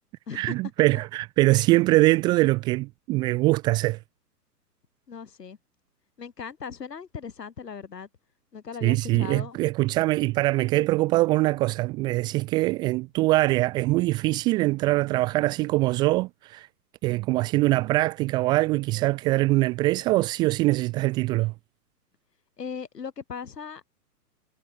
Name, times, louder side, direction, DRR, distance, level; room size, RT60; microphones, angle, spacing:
voice 1, 0.3-4.0 8.8-16.7 17.0-21.5, right 20 dB, 10° right, 0.4 m, -23 dB
voice 2, 5.1-5.6 6.2-8.1 8.5-9.6 22.6-23.9, left 6 dB, 80° left, 4.5 m, -38 dB
hypercardioid pair, 125°, 48 cm